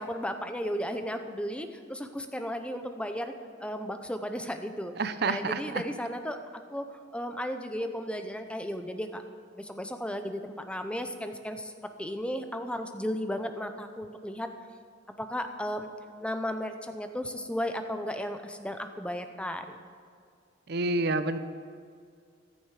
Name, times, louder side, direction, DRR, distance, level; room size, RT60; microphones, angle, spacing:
voice 1, 0.0-3.3 3.6-4.9 5.2-9.2 9.5-11.7 12.0-14.5 15.2-15.9 16.2-19.8, equal, 5° left, 7 dB, 0.7 m, -34 dB
voice 2, 5.0-5.8 20.7-21.4, right 3 dB, 55° right, 11 dB, 0.6 m, -28 dB
14.5 x 13.0 x 4.9 m, 2.2 s
head